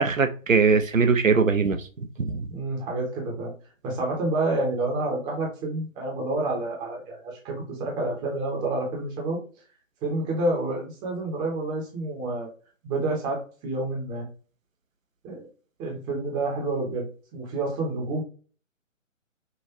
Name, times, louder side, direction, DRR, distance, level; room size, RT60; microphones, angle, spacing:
voice 1, 0.0-1.8 2.2-2.5, right 5 dB, 75° right, 0.9 m, -21 dB
voice 2, 2.5-3.5 3.8-9.4 10.0-12.5 12.8-14.3 15.2-15.5 15.8-18.2, right 2 dB, 10° right, 1.0 m, -29 dB
5.8 x 2.7 x 2.8 m
figure-of-eight pair, 135°, 40 cm